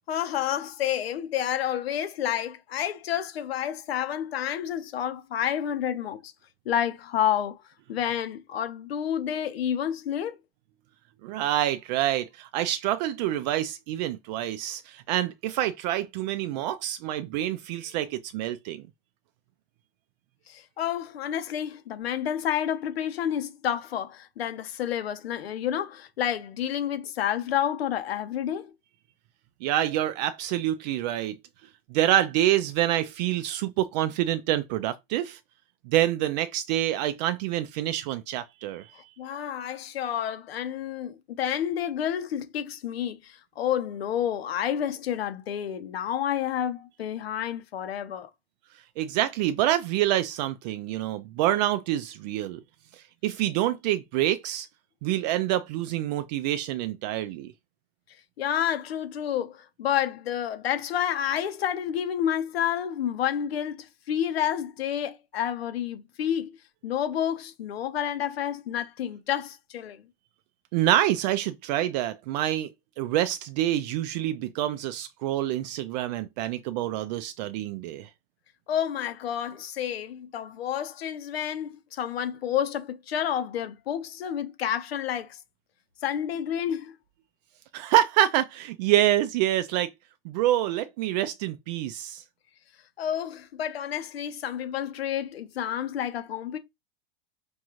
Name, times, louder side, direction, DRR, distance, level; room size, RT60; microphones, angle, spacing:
voice 1, 0.1-6.3 6.6-7.6 7.9-10.4 20.5-28.7 38.9-48.3 58.4-66.6 66.8-70.0 78.7-85.4 86.0-86.9 93.0-96.6, left 10 dB, 85° left, 1.0 m, -29 dB
voice 2, 11.2-18.8 29.6-31.4 31.9-35.4 35.9-38.9 49.0-52.6 52.9-54.7 55.0-57.5 70.7-72.7 73.0-78.1 87.7-89.9 90.2-92.2, right 13 dB, 45° right, 0.4 m, -26 dB
5.2 x 2.4 x 3.0 m
supercardioid pair, 135°, 30 cm